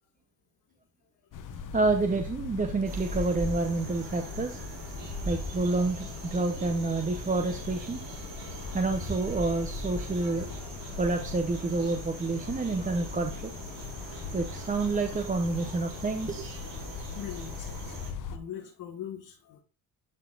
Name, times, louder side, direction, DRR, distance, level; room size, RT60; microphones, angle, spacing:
sound 1, 1.3-18.4, left 5 dB, 60° left, 1.0 m, -40 dB
voice 1, 1.7-4.6 5.3-8.0 8.7-10.5 11.0-13.5 14.3-16.5, right 3 dB, 20° right, 5 dB, 0.8 m, -28 dB
Wind, 1.8-11.7, equal, 40° right, 2.9 m, -41 dB
sound 2, 2.8-18.1, right 4 dB, 65° right, 3.5 m, -45 dB
voice 2, 17.1-19.6, left 9 dB, 80° left, -1 dB, 1.7 m, -41 dB
11.5 x 4.0 x 2.5 m, 0.34 s
cardioid pair, 105°, 36 cm